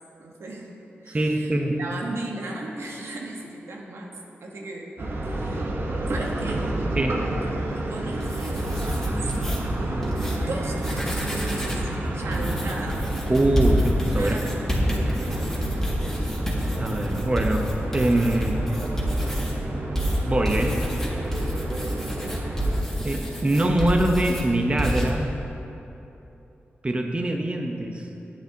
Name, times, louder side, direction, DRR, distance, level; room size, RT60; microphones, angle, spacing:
voice 1, 0.2-0.7 1.0-4.1 4.4-4.9 5.2-5.8 6.1-6.7 7.7-9.2 10.4-11.8 12.1-13.0 14.2-15.7, right 2 dB, 85° right, -1 dB, 1.1 m, -36 dB
voice 2, 1.1-1.8 6.9-7.2 13.3-14.4 16.8-18.6 19.2-19.4 20.3-20.8 23.0-25.3 26.8-28.1, right 1 dB, 25° right, 3 dB, 0.7 m, -23 dB
sound 1, 5.0-22.8, right 1 dB, 60° right, 0.9 m, -30 dB
sound 2, 8.1-9.6 10.0-10.4 10.7-11.9 12.3-19.5 20.0-24.5 24.8-25.1, equal, 10° left, 1.9 m, -28 dB
sound 3, 16.6-24.3, equal, 35° left, 1.8 m, -43 dB
11.5 x 8.5 x 2.8 m, 3.0 s
cardioid pair, 70°, 4 cm